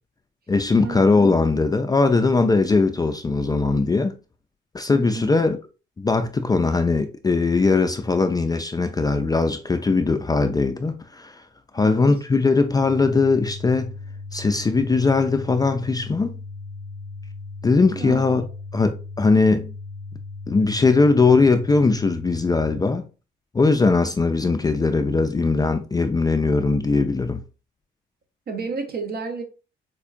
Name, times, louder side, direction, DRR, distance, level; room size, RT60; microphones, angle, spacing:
voice 1, 0.5-4.1 4.7-5.6 6.0-11.4 11.7-13.9 14.3-16.4 17.6-18.4 18.7-19.7 20.5-23.0 23.5-27.4, left 3 dB, 20° left, 0.4 m, -20 dB
voice 2, 4.9-5.3 11.8-12.1 17.9-18.5 28.5-29.4, right 3 dB, 50° right, 0.9 m, -31 dB
sound 1, 12.8-22.8, left 3 dB, 10° right, 0.7 m, -37 dB
4.4 x 2.3 x 2.4 m
cardioid pair, 90°, 20 cm